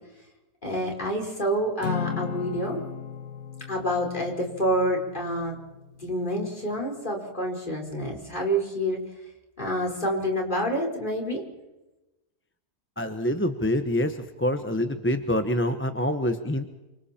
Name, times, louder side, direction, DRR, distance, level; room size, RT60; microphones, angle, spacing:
voice 1, 0.6-2.8 3.7-5.6 6.0-9.0 9.6-11.4, equal, 30° left, 0 dB, 5.0 m, -28 dB
Acoustic guitar / Strum, 1.8-6.3, left 7 dB, 65° left, 1.5 m, -36 dB
voice 2, 13.0-16.7, left 1 dB, 10° left, 8 dB, 0.9 m, -26 dB
29.0 x 25.5 x 4.4 m, 1.0 s
omnidirectional pair, 1.6 m